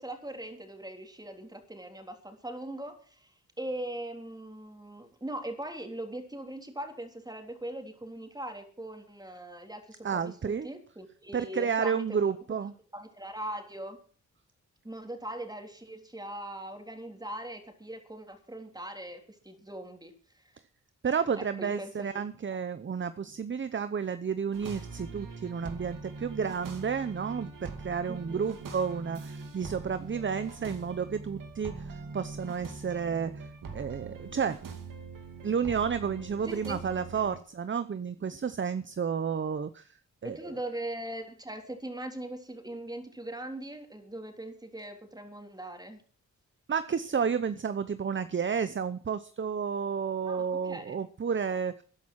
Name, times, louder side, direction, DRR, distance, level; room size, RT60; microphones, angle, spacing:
voice 1, 0.0-12.3 12.9-14.0 14.8-20.5 21.4-22.1 28.1-28.4 36.4-36.8 40.2-46.0 50.2-51.0, right 1 dB, 10° right, 4 dB, 3.4 m, -40 dB
voice 2, 10.0-10.7 11.3-12.7 21.0-33.5 33.7-34.6 35.4-40.0 40.2-40.4 46.7-51.8, right 6 dB, 40° right, 12 dB, 0.8 m, -31 dB
sound 1, 24.5-37.4, right 4 dB, 85° right, 2.4 m, -42 dB
13.0 x 11.0 x 6.3 m, 0.43 s
wide cardioid pair, 90°, 31 cm